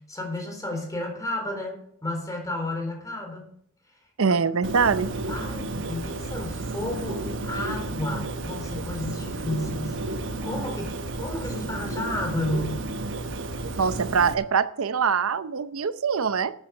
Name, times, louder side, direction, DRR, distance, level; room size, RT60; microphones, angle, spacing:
voice 1, 0.1-3.5 5.3-10.0 10.4-12.8, left 1 dB, 15° left, 3 dB, 3.9 m, -32 dB
voice 2, 4.2-5.1 13.8-16.5, right 5 dB, 90° right, 13 dB, 0.7 m, -23 dB
Bird, 4.6-14.3, right 2 dB, 60° right, 1.2 m, -32 dB
12.0 x 8.9 x 6.5 m, 0.64 s
head